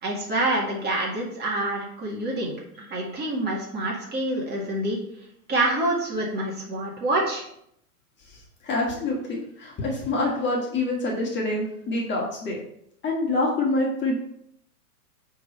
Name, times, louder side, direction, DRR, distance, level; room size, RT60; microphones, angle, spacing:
voice 1, 0.0-2.5 2.8-5.0 5.5-7.4, right 1 dB, 20° right, -2 dB, 2.0 m, -26 dB
voice 2, 8.6-12.6 13.0-14.2, left 2 dB, 25° left, -2 dB, 2.0 m, -26 dB
9.0 x 3.9 x 4.4 m, 0.72 s
hypercardioid pair, 115°, 47 cm